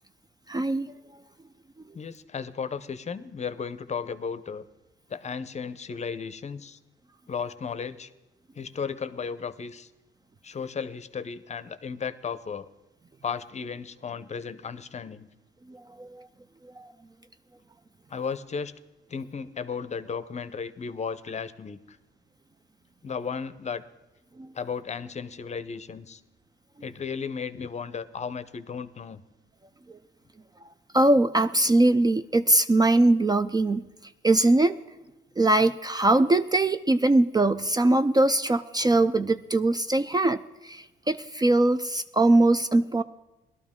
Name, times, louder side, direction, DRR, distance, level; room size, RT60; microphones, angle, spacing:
voice 1, 0.5-0.9 15.7-16.3 16.8-16.9 24.4-24.5 30.9-33.9 34.2-34.8 35.4-43.0, right 2 dB, 20° right, 11 dB, 0.4 m, -22 dB
voice 2, 1.9-4.6 5.1-6.8 7.3-8.1 8.6-9.9 10.4-12.7 13.2-15.3 18.1-18.7 19.1-22.0 23.0-23.8 24.5-26.2 26.8-29.2, left 6 dB, 35° left, 14 dB, 0.7 m, -34 dB
18.5 x 12.5 x 3.6 m, 1.0 s
cardioid pair, 90°, 20 cm